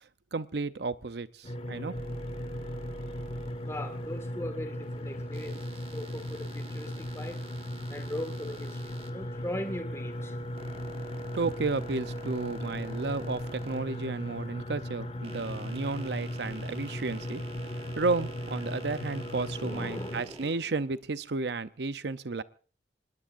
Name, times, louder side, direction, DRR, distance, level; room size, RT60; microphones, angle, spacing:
voice 1, 0.3-2.0 11.3-17.4 18.0-22.4, right 3 dB, 65° right, 13 dB, 0.7 m, -32 dB
sound 1, 1.4-20.2, equal, 35° left, 1.8 m, -37 dB
sound 2, 1.9-4.3 5.3-9.1 10.1-14.5 15.0-20.6, right 2 dB, 35° right, 1.4 m, -49 dB
voice 2, 3.6-5.6 5.9-7.4 7.9-10.3 17.9-18.0 19.6-20.5, left 1 dB, 15° left, 7 dB, 1.9 m, -39 dB
24.5 x 20.5 x 2.6 m, 0.40 s
head